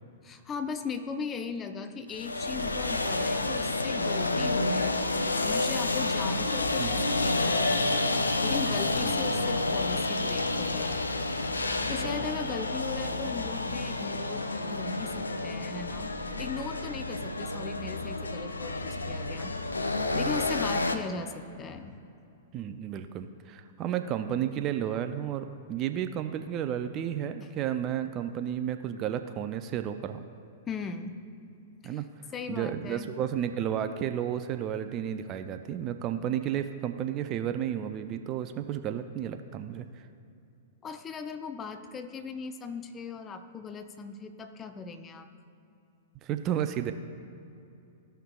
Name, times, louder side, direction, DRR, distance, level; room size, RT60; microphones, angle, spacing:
voice 1, 0.2-11.0 11.9-16.1 16.4-19.6 20.1-22.0 27.4-27.5 30.7-31.2 31.8-32.0 32.3-33.2 40.8-45.3, left 5 dB, 25° left, 9 dB, 0.6 m, -38 dB
sound 1, 2.1-21.0, left 2 dB, 85° left, 0.5 m, -29 dB
voice 2, 9.0-9.4 11.8-11.9 22.5-30.2 31.8-32.1 32.5-40.0 46.2-46.9, right 10 dB, 35° right, 8 dB, 0.4 m, -32 dB
15.0 x 5.6 x 2.3 m, 2.6 s
figure-of-eight pair, 105°, 0 cm